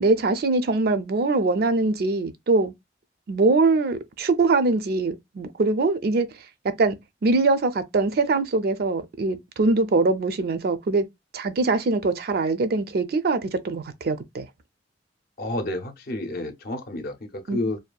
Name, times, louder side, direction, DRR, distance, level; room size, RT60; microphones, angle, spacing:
voice 1, 0.0-2.7 3.3-6.3 6.8-7.0 7.2-11.1 11.3-14.5 17.5-17.6, right 3 dB, 60° right, 0.4 m, -22 dB
voice 2, 15.4-17.8, left 1 dB, 55° left, 0.6 m, -30 dB
2.7 x 2.3 x 2.2 m
head